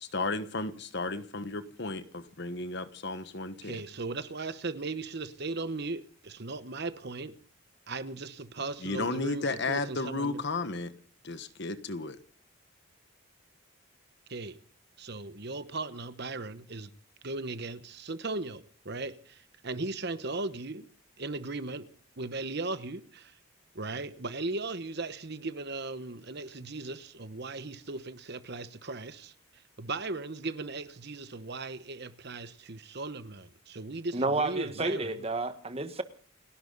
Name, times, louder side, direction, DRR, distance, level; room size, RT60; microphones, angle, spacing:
voice 1, 0.0-3.8 8.8-10.9 11.2-12.2, left 3 dB, 55° left, 1.3 m, -33 dB
voice 2, 3.6-7.3 7.9-10.4 14.3-14.6 15.0-16.9 17.2-20.9 21.2-21.9 22.2-23.4 23.7-35.2, right 3 dB, 50° right, 1.1 m, -37 dB
voice 3, 34.1-36.0, right 2 dB, 25° right, 1.5 m, -30 dB
29.5 x 12.0 x 4.0 m
head